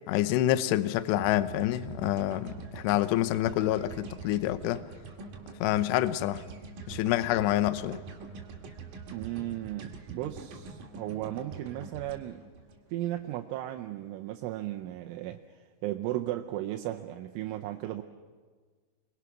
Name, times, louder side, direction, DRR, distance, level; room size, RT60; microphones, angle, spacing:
voice 1, 0.1-4.8 5.6-6.4 6.9-8.0, left 13 dB, 85° left, 2.4 m, -27 dB
sound 1, 1.2-13.4, right 4 dB, 50° right, 2.8 m, -45 dB
voice 2, 9.1-12.4 12.9-18.0, right 14 dB, 80° right, 3.0 m, -35 dB
28.0 x 22.0 x 6.0 m
omnidirectional pair, 6.0 m